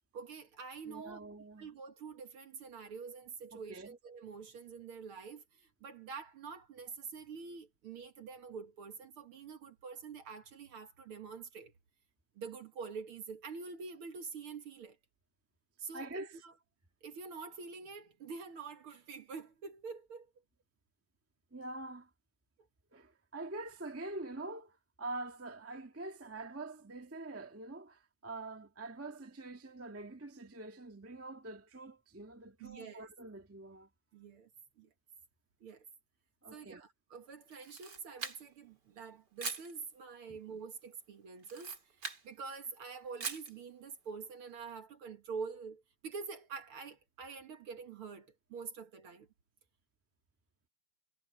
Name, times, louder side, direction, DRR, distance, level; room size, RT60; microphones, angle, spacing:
voice 1, 0.1-1.2 1.6-11.7 12.4-15.0 15.8-16.5 17.0-20.3 32.6-33.1 34.1-34.5 34.8-34.9 35.6-35.8 36.5-49.3, right 5 dB, 55° right, 2.0 m, -46 dB
voice 2, 0.8-1.7 3.5-4.0 15.9-16.4 21.5-22.1 22.9-33.9 36.4-36.8 38.9-39.0 40.3-40.4, right 2 dB, 10° right, 0.9 m, -45 dB
Camera, 37.5-38.7 39.4-39.7 41.4-42.2 43.2-43.5, right 4 dB, 35° right, 3.3 m, -42 dB
omnidirectional pair, 3.4 m